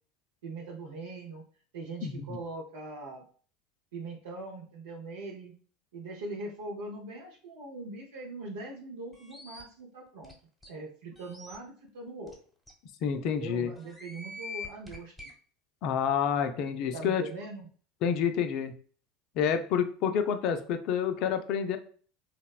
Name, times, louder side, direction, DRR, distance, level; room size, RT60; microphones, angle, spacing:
voice 1, 0.4-1.4 1.7-3.2 3.9-5.5 5.9-10.3 10.7-12.4 13.1-15.3 16.9-17.7, right 2 dB, 75° right, -2 dB, 0.5 m, -41 dB
voice 2, 2.0-2.4 13.0-13.7 15.8-17.2 18.0-18.7 19.4-21.8, left 7 dB, 55° left, 8 dB, 0.3 m, -28 dB
sound 1, 9.1-9.6 10.2-10.3 10.6-10.7 11.2-11.6 12.3-12.4 12.7-12.8 13.8-15.3, left 3 dB, 5° right, 1.1 m, -44 dB
2.9 x 2.0 x 2.3 m, 0.43 s
hypercardioid pair, 75°, 0 cm